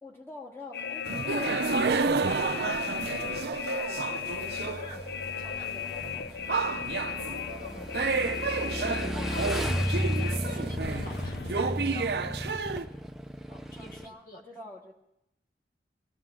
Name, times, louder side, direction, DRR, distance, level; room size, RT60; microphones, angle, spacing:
voice 1, 0.0-2.7 3.1-4.8 5.4-6.8 13.5-14.9, left 2 dB, 15° left, -2 dB, 1.9 m, -46 dB
sound 1, 0.7-11.5, left 8 dB, 75° left, 0.5 m, -36 dB
sound 2, 1.1-5.0 5.4-5.5 6.0-6.1 6.5-7.6 7.9-12.9, right 4 dB, 70° right, 0.6 m, -30 dB
voice 2, 3.0-3.7 4.5-5.0 5.4-5.7 7.1-8.0 8.7-12.3 12.7-12.9 13.7-14.7, equal, 50° left, 3 dB, 1.7 m, -47 dB
Motorcycle / Engine, 4.3-14.1, equal, ahead, 0.6 m, -35 dB
18.5 x 15.0 x 3.7 m, 0.85 s
head